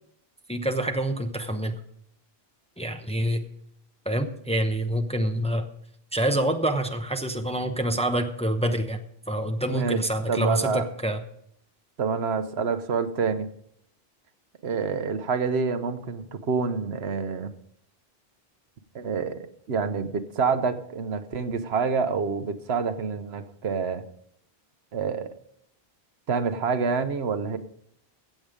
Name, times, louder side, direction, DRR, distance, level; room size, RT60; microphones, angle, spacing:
voice 1, 0.5-1.8 2.8-3.4 4.1-5.7 6.1-9.0 9.3-11.2, right 1 dB, 5° left, 6 dB, 0.8 m, -26 dB
voice 2, 9.7-10.0 10.3-10.9 12.0-13.5 14.6-17.5 18.9-19.4 19.7-24.0 24.9-25.3 26.3-27.6, right 5 dB, 80° right, 10 dB, 1.2 m, -27 dB
15.5 x 8.0 x 5.1 m, 0.70 s
omnidirectional pair, 1.1 m